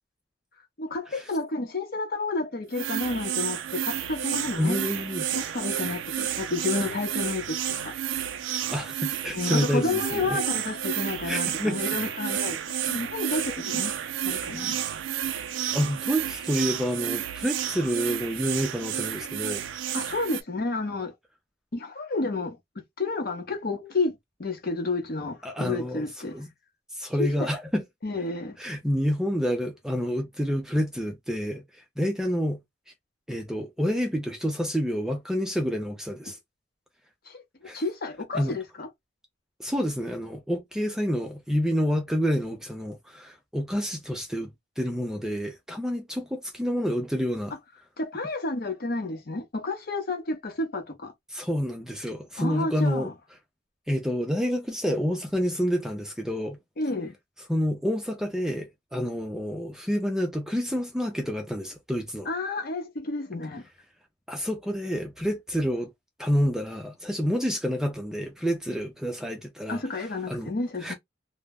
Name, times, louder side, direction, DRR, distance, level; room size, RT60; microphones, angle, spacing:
voice 1, 0.8-4.8 5.3-7.6 7.8-7.9 9.3-13.9 14.2-14.8 19.9-21.1 21.7-24.1 24.4-26.3 27.2-27.5 28.0-28.6 37.3-37.4 37.7-38.9 48.0-51.1 52.4-53.1 56.8-57.1 62.3-63.6 69.7-70.9, left 3 dB, 50° left, 0.7 m, -30 dB
sound 1, 2.7-20.4, right 10 dB, 75° right, 0.3 m, -31 dB
voice 2, 4.6-5.3 8.7-10.4 11.2-11.8 15.7-19.6 25.4-26.5 26.9-27.8 28.6-31.6 32.0-32.6 33.3-36.4 37.7-37.8 38.3-38.5 39.6-47.5 51.3-53.1 53.9-56.6 57.5-62.3 64.3-65.9 66.2-69.8 70.3-70.5 70.8-70.9, equal, 5° right, 0.4 m, -28 dB
2.1 x 2.0 x 3.4 m
head